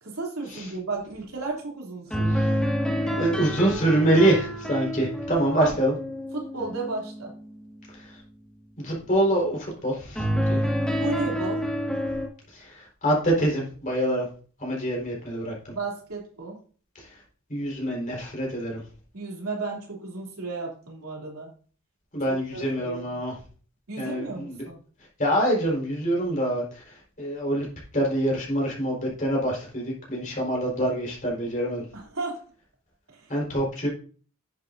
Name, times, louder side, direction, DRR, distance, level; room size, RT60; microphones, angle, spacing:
voice 1, 0.0-2.5 5.5-5.7 6.3-7.3 11.0-11.6 15.7-16.6 19.1-21.5 22.3-23.2 23.9-24.8 31.9-32.4 33.1-33.2, right 3 dB, 80° right, -1 dB, 3.0 m, -34 dB
sound 1, 2.1-7.4 10.2-12.3, equal, 5° left, 1.7 m, -28 dB
voice 2, 3.0-5.9 8.8-10.6 12.5-14.3 14.6-15.5 17.0-17.1 17.5-18.8 22.1-23.3 24.0-24.7 25.2-27.7 27.9-31.8 33.3-33.9, right 1 dB, 35° left, -3 dB, 4.5 m, -25 dB
10.5 x 7.7 x 2.7 m, 0.41 s
head